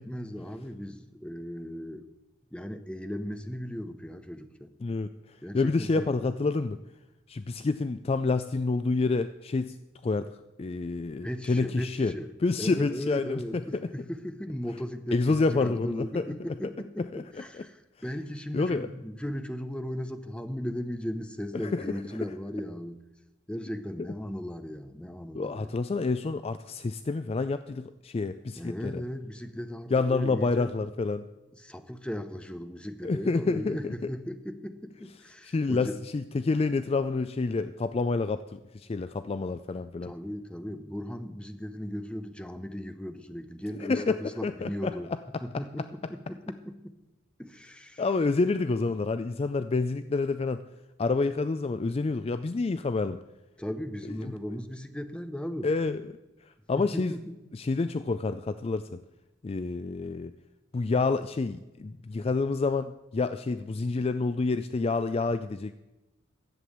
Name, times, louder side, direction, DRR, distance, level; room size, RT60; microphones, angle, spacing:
voice 1, 0.0-2.1 2.5-4.7 5.4-6.2 11.2-12.3 12.6-23.0 23.5-25.7 28.5-30.7 31.5-36.0 40.0-45.1 45.4-47.0 47.4-48.0 53.6-55.7 56.9-57.4, equal, 5° left, 9 dB, 0.7 m, -37 dB
voice 2, 4.8-5.1 5.5-6.8 7.3-9.8 10.0-10.3 10.6-12.1 12.4-13.4 15.1-16.3 17.1-17.2 17.5-17.6 18.5-18.9 21.5-21.9 25.3-29.0 29.9-31.3 33.0-33.9 35.4-40.1 43.8-44.9 48.0-50.6 51.0-53.2 54.2-54.3 55.6-56.0 56.7-57.1 57.5-59.0 59.4-60.3 60.7-65.7, left 3 dB, 30° left, 12 dB, 0.3 m, -28 dB
11.5 x 7.7 x 8.6 m, 1.0 s
head